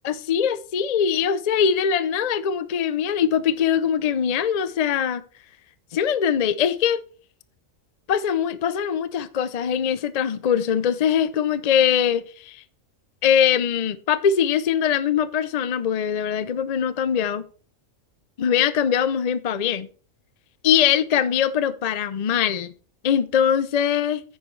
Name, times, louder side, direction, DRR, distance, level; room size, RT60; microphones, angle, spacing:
voice 1, 0.0-5.2 5.9-7.0 8.1-12.6 13.2-17.4 18.4-19.9 20.6-22.7 23.0-24.2, left 8 dB, 55° left, 0.4 m, -22 dB
9.4 x 9.3 x 3.2 m
omnidirectional pair, 1.4 m